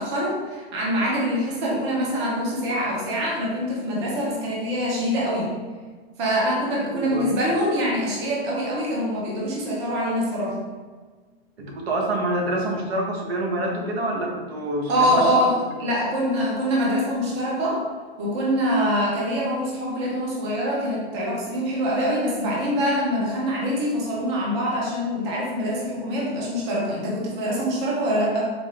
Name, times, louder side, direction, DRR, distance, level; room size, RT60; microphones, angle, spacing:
voice 1, 0.0-5.6 6.2-10.6 14.9-17.9 18.2-28.5, equal, 25° right, -4 dB, 0.7 m, -24 dB
voice 2, 6.8-7.4 11.6-15.6, right 1 dB, 85° right, 1 dB, 0.8 m, -27 dB
3.9 x 2.3 x 3.1 m, 1.4 s
supercardioid pair, 175°, 31 cm